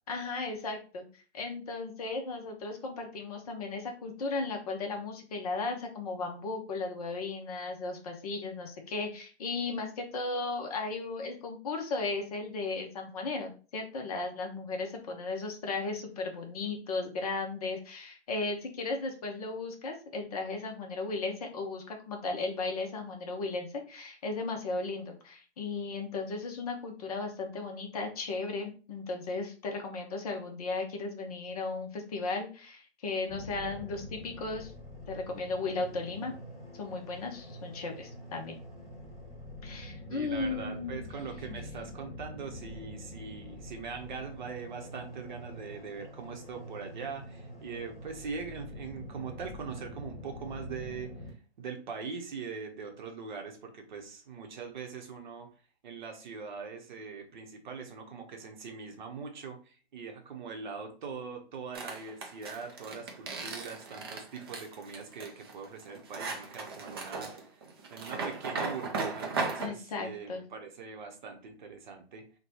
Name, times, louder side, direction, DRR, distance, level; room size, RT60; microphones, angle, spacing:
voice 1, 0.1-1.1 1.3-34.7 35.1-36.3 36.7-38.5 39.6-41.0 41.5-41.6 69.6-70.4, left 3 dB, 35° left, 3 dB, 0.7 m, -36 dB
sound 1, 33.3-51.3, left 1 dB, ahead, 1.6 m, -45 dB
voice 2, 40.1-55.5 55.8-67.3 67.9-72.3, right 5 dB, 45° right, 3 dB, 0.8 m, -42 dB
sound 2, 61.7-69.7, right 3 dB, 20° right, 0.4 m, -37 dB
3.1 x 2.2 x 4.1 m, 0.36 s
figure-of-eight pair, 135°, 34 cm